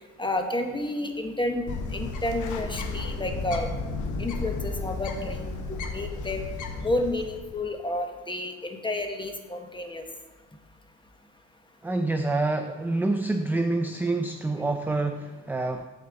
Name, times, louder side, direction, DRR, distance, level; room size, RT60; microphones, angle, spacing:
voice 1, 0.2-3.7 4.2-6.4 6.8-10.0, left 1 dB, 15° left, 4 dB, 1.2 m, -30 dB
Bird, 1.7-7.6, left 3 dB, 80° left, 1.1 m, -33 dB
voice 2, 11.8-15.8, right 2 dB, 5° right, 6 dB, 0.5 m, -27 dB
8.5 x 4.4 x 7.3 m, 1.2 s
cardioid pair, 90°, 30 cm